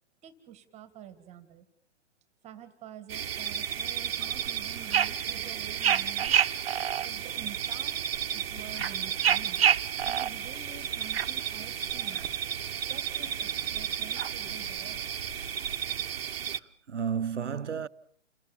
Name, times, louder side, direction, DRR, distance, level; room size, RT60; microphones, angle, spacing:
voice 1, 0.2-1.7 2.4-6.4 7.0-12.2 12.9-15.0, right 9 dB, 20° right, 2.0 m, -48 dB
sound 1, 3.1-16.6, right 9 dB, 55° right, 1.1 m, -30 dB
Car, 7.5-15.6, left 2 dB, 60° left, 7.0 m, -54 dB
voice 2, 16.5-17.9, right 7 dB, 80° right, 0.9 m, -32 dB
29.5 x 20.0 x 7.2 m
figure-of-eight pair, 125°, 35 cm